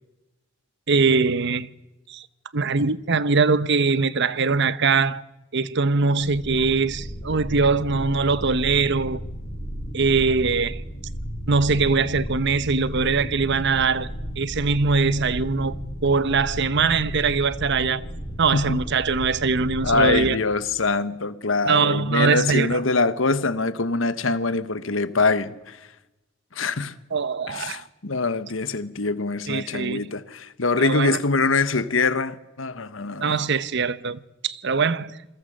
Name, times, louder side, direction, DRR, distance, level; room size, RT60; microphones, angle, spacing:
voice 1, 0.9-1.7 2.1-2.3 2.5-5.2 5.5-9.2 9.9-10.8 11.5-14.1 14.4-15.7 16.0-18.1 18.4-20.4 21.7-22.8 27.1-27.8 29.5-30.0 30.8-31.2 33.2-35.4, right 4 dB, 60° right, 0.9 m, -22 dB
sound 1, 6.2-20.1, equal, 35° left, 7.5 m, -34 dB
voice 2, 19.8-25.8 26.5-26.9 27.5-33.4, left 3 dB, 75° left, 1.3 m, -24 dB
27.5 x 21.0 x 6.5 m
head